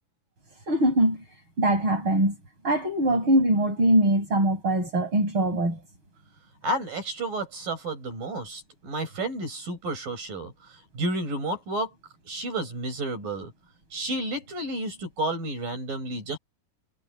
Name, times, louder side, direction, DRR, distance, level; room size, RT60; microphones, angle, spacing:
voice 1, 0.7-1.2 1.6-2.4 2.6-5.8, right 1 dB, 35° right, 8.9 m, -22 dB
voice 2, 6.6-11.9 12.3-13.5 13.9-16.4, right 1 dB, 75° right, 9.0 m, -31 dB
omnidirectional pair, 4.0 m